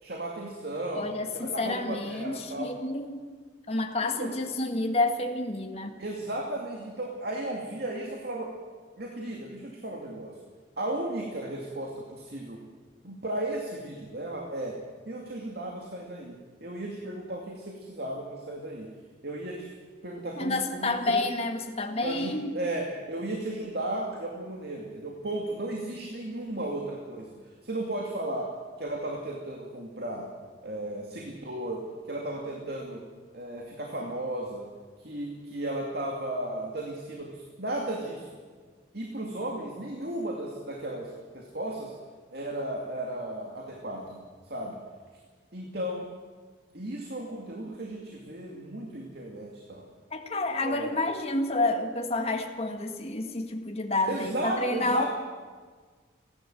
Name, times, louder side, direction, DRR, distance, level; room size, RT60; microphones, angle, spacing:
voice 1, 0.0-2.7 4.0-4.3 6.0-8.5 9.0-10.3 10.8-12.6 13.0-14.8 15.1-16.3 16.6-18.9 19.2-19.7 20.0-21.0 22.0-27.4 27.6-28.5 28.8-30.3 30.6-33.0 33.3-34.7 35.0-38.3 38.9-41.9 42.3-44.2 44.4-44.8 45.5-46.1 46.7-49.9 50.6-51.0 54.0-55.1, right 1 dB, 55° right, 0 dB, 2.5 m, -35 dB
voice 2, 0.9-3.2 3.7-5.9 20.4-22.5 50.1-55.1, left 2 dB, 35° left, 4 dB, 1.9 m, -29 dB
30.0 x 11.5 x 7.9 m, 1.5 s
head